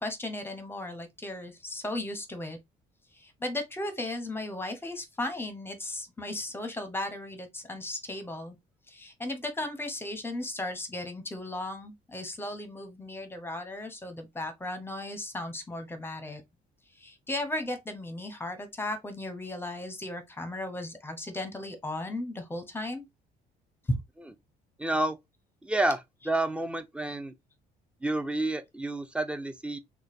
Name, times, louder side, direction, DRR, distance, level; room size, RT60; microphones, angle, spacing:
voice 1, 0.0-2.6 3.1-8.5 8.9-16.4 16.9-23.0 23.9-24.0, left 1 dB, 15° left, 0.9 m, -36 dB
voice 2, 24.8-25.2 25.6-26.0 26.2-27.3 28.0-29.8, right 2 dB, 5° right, 0.5 m, -29 dB
3.1 x 2.3 x 4.1 m
cardioid pair, 110°, 17 cm